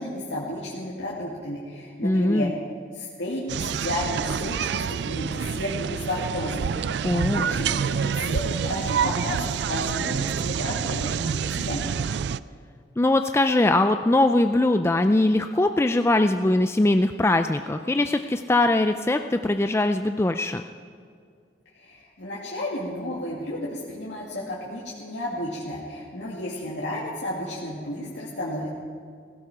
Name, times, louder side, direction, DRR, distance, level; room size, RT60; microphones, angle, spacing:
voice 1, 0.0-2.5 2.9-11.8 21.7-28.7, left 1 dB, 90° left, -7 dB, 2.4 m, -32 dB
voice 2, 2.0-2.5 7.0-7.5 13.0-20.6, left 2 dB, 15° left, 7 dB, 0.4 m, -21 dB
sound 1, 3.5-12.4, right 7 dB, 70° right, 0.4 m, -27 dB
17.0 x 16.0 x 5.0 m, 2.2 s
head